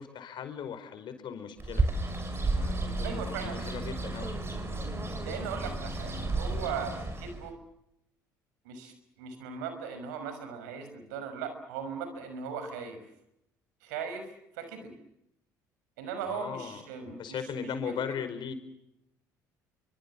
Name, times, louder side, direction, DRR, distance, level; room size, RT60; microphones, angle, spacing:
voice 1, 0.0-1.9 2.5-4.3 16.3-18.5, left 7 dB, 55° left, 9 dB, 5.1 m, -38 dB
Bird, 1.6-7.5, right 2 dB, 25° right, 6.2 m, -32 dB
voice 2, 3.0-3.6 4.8-4.9 5.2-7.5 8.6-13.0 13.8-14.3 14.6-14.9 16.0-17.9, right 6 dB, 80° right, 9 dB, 5.8 m, -38 dB
28.0 x 25.0 x 7.3 m, 0.81 s
hypercardioid pair, 60°, 9 cm